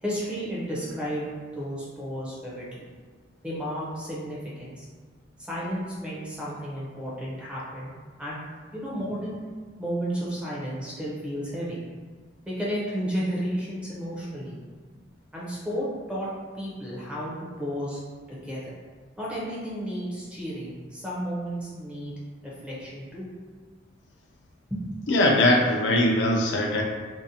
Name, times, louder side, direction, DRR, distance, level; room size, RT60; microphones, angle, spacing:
voice 1, 0.0-2.9 3.4-4.9 5.5-7.9 8.2-8.5 8.7-9.4 9.8-11.8 12.5-14.6 15.3-16.3 16.5-18.0 18.3-18.7 19.2-22.2 22.4-23.3 24.7-25.0, equal, 5° right, -7 dB, 0.5 m, -32 dB
voice 2, 25.1-26.8, left 1 dB, 70° left, 0 dB, 0.4 m, -21 dB
2.5 x 2.0 x 2.7 m, 1.5 s
head